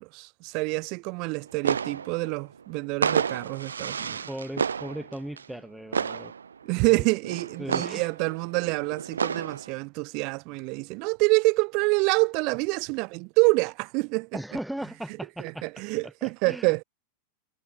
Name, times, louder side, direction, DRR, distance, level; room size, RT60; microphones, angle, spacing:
voice 1, 0.0-4.3 6.7-14.3 15.4-16.8, right 31 dB, 45° right, 3.1 m, -27 dB
sound 1, 1.4-2.6 2.9-5.6 5.9-6.7 7.1-9.7, right 6 dB, 70° right, 2.8 m, -31 dB
voice 2, 4.3-6.3 6.9-7.1 7.6-8.1 14.3-15.7 16.2-16.7, right 1 dB, ahead, 2.4 m, -37 dB
figure-of-eight pair, 90°, 0 cm